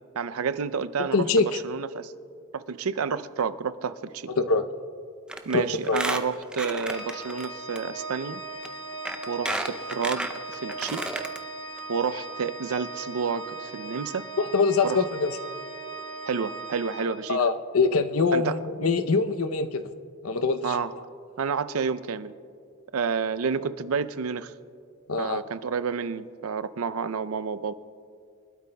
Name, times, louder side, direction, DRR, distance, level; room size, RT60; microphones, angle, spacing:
voice 1, 0.1-2.1 2.5-4.3 5.5-8.4 9.3-11.0 11.9-14.3 14.8-15.0 16.3-17.4 18.3-18.6 20.6-20.9 21.4-22.3 22.9-24.5 25.2-27.7, right 5 dB, 90° right, 14 dB, 0.5 m, -30 dB
voice 2, 1.0-1.6 4.4-4.7 5.5-6.0 14.4-15.4 17.3-19.8 20.2-21.0 25.1-25.4, left 4 dB, 90° left, 9 dB, 0.7 m, -24 dB
Squeak, 5.3-5.5 5.8-7.5 7.8-7.9 8.6-8.7 9.1-11.4 11.8-11.9 12.1-12.2, right 1 dB, 5° right, 0.5 m, -32 dB
Organ, 6.9-17.7, right 3 dB, 25° left, 1.8 m, -39 dB
24.0 x 12.5 x 2.2 m, 2.3 s
head